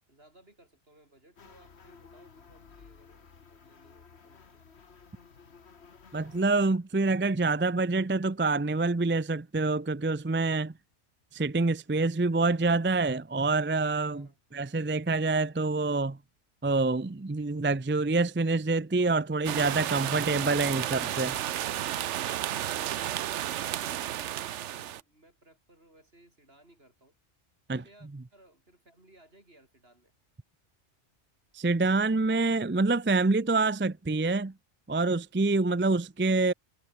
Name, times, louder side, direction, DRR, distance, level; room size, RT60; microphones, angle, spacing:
voice 1, 0.1-4.6 14.1-14.4 22.2-27.1 27.7-30.1, right 1 dB, 55° right, 7.1 m, -60 dB
sound 1, 1.4-6.7, left 5 dB, 65° left, 1.8 m, -54 dB
voice 2, 6.1-10.7 11.3-16.2 16.6-21.4 27.7-27.8 31.5-34.5 34.9-36.5, right 3 dB, 15° right, 0.4 m, -26 dB
sound 2, 19.4-25.0, right 12 dB, 80° right, 1.0 m, -32 dB
omnidirectional pair, 1.2 m